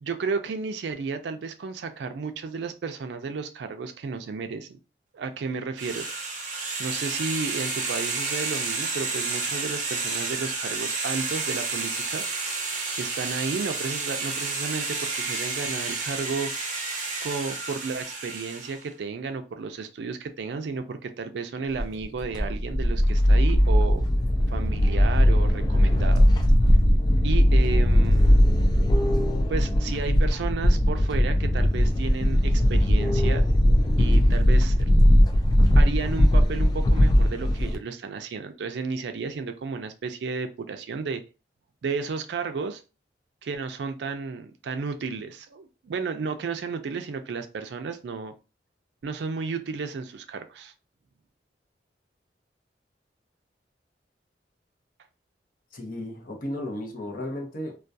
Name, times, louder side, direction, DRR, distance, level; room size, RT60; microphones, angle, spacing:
voice 1, 0.0-4.8 5.1-6.1 6.8-12.2 13.0-16.5 17.2-24.0 24.5-26.3 27.2-28.4 29.5-33.4 34.0-34.9 35.8-41.2 41.8-42.8 43.4-48.3 49.0-50.7, right 4 dB, 75° right, 8 dB, 0.4 m, -33 dB
sound 1, 5.8-18.8, right 3 dB, 45° right, 0.7 m, -31 dB
sound 2, 21.8-37.8, equal, 25° left, 0.3 m, -19 dB
voice 2, 55.7-57.8, left 1 dB, 55° left, 2 dB, 0.7 m, -34 dB
2.3 x 2.2 x 2.6 m, 0.31 s
head